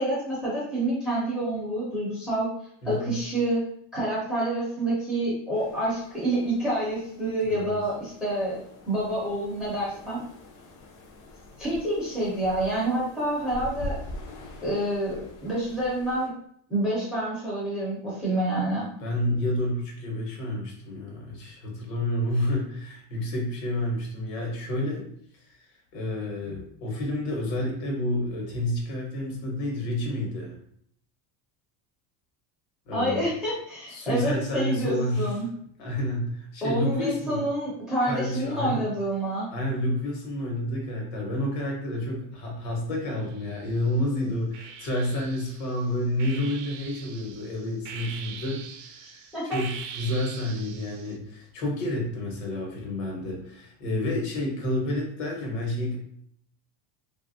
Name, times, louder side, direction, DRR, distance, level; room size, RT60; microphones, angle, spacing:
voice 1, 0.0-2.5 2.8-3.6 3.9-8.6 8.9-10.2 11.6-14.0 14.6-16.3 16.7-18.9 32.9-35.5 36.6-39.5 49.3-49.4, right 1 dB, ahead, -8 dB, 0.5 m, -28 dB
voice 2, 2.8-3.1 7.4-7.8 19.0-25.1 25.9-30.5 32.9-33.3 33.9-35.3 35.8-37.5 38.0-38.9 39.5-56.0, left 1 dB, 80° left, 0 dB, 1.2 m, -29 dB
sound 1, 5.5-16.3, left 1 dB, 50° left, 0.7 m, -44 dB
sound 2, 43.2-43.9 44.5-51.2, right 7 dB, 75° right, 0.6 m, -42 dB
3.0 x 2.5 x 2.6 m, 0.66 s
cardioid pair, 170°, 46 cm